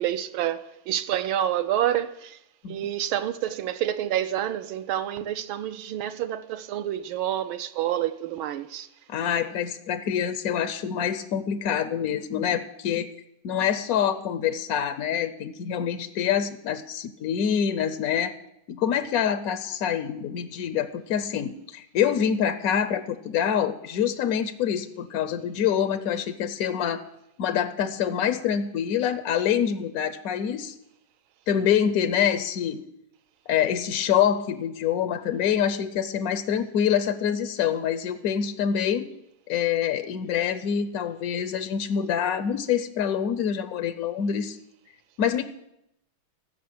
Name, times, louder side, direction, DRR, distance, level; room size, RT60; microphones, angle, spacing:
voice 1, 0.0-2.4 2.7-8.9, right 11 dB, 85° right, 1.5 m, -28 dB
voice 2, 9.1-13.1 13.4-18.3 18.7-27.0 27.4-30.7 31.5-32.8 33.5-39.1 39.5-44.6 45.2-45.4, left 8 dB, 75° left, 0.8 m, -26 dB
15.0 x 6.5 x 7.7 m
omnidirectional pair, 2.2 m